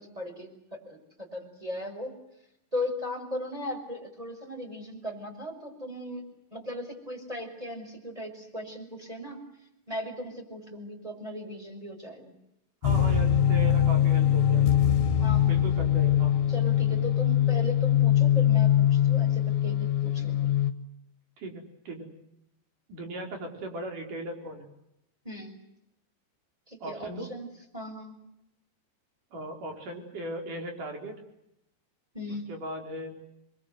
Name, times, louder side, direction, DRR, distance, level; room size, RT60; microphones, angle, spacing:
voice 1, 0.0-2.1 2.7-6.2 6.5-9.4 9.9-12.3 15.2-15.5 16.5-20.5 25.2-25.5 26.7-27.5 27.7-28.1 32.1-32.5, left 1 dB, 10° right, 3 dB, 5.8 m, -37 dB
sound 1, 12.8-20.7, left 10 dB, 85° left, 3.8 m, -22 dB
voice 2, 12.8-15.0 15.5-16.4 21.4-22.1 22.9-24.7 26.8-27.3 29.3-31.2 32.3-33.2, right 1 dB, 50° right, 3 dB, 5.7 m, -38 dB
27.5 x 23.5 x 8.0 m, 0.83 s
omnidirectional pair, 5.0 m